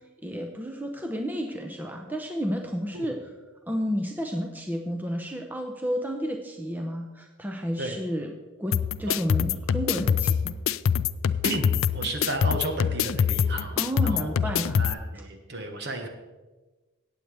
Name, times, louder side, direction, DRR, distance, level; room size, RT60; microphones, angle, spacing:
voice 1, 0.2-3.2 3.7-8.3 8.6-10.6 13.8-14.9, equal, 10° right, 3 dB, 0.6 m, -31 dB
sound 1, 8.7-14.9, left 7 dB, 75° left, 0.4 m, -25 dB
voice 2, 11.9-14.4 14.8-16.1, right 2 dB, 55° right, 4 dB, 1.4 m, -33 dB
17.5 x 7.9 x 3.4 m, 1.2 s
head